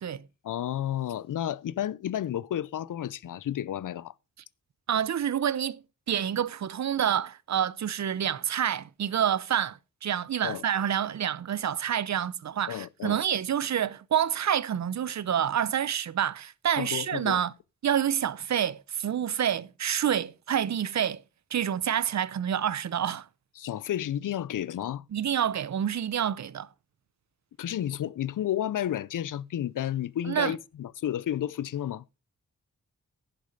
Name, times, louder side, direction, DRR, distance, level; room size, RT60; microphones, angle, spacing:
voice 1, 0.4-4.1 10.4-10.6 12.7-13.2 16.8-17.4 23.6-25.0 27.6-32.0, left 11 dB, 85° left, 0.5 m, -31 dB
voice 2, 4.9-5.8 6.1-17.5 17.8-21.2 21.5-23.3 25.1-26.7 30.3-30.6, right 9 dB, 65° right, 0.6 m, -28 dB
10.5 x 6.9 x 5.2 m
wide cardioid pair, 130°, 31 cm